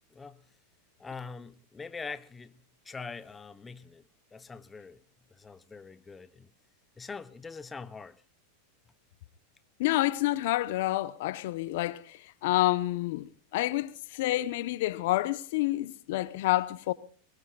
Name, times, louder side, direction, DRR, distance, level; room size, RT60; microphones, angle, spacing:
voice 1, 0.1-0.4 1.0-2.6 2.8-5.0 5.3-6.5 7.0-8.2, left 4 dB, 15° left, 0.9 m, -43 dB
voice 2, 9.8-16.9, left 16 dB, 65° left, 1.0 m, -28 dB
23.5 x 21.0 x 2.4 m
hypercardioid pair, 110°, 0 cm